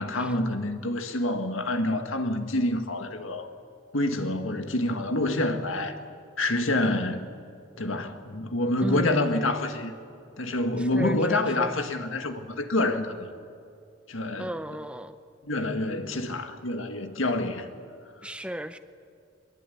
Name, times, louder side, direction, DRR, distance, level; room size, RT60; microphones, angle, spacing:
voice 1, 0.0-3.5 3.9-6.0 6.4-7.3 7.8-9.9 10.4-13.3 14.1-14.5 15.4-17.7, left 2 dB, 90° left, 7 dB, 2.0 m, -27 dB
voice 2, 8.8-9.4 10.8-11.7 14.4-15.2 18.2-18.8, equal, 5° right, 10 dB, 0.7 m, -34 dB
23.0 x 22.0 x 9.4 m, 2.4 s
head